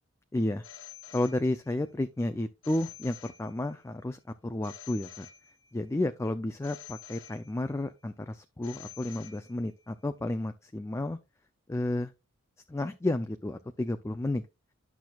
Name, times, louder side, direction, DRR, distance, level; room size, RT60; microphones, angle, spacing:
voice 1, 0.3-0.7 1.1-5.3 5.7-11.2 11.7-12.1 12.7-14.4, left 1 dB, 15° left, 0.3 m, -32 dB
Telephone, 0.6-1.9 2.6-3.9 4.6-5.9 6.6-7.9 8.6-9.9, left 10 dB, 65° left, 1.3 m, -49 dB
10.5 x 6.1 x 2.3 m
head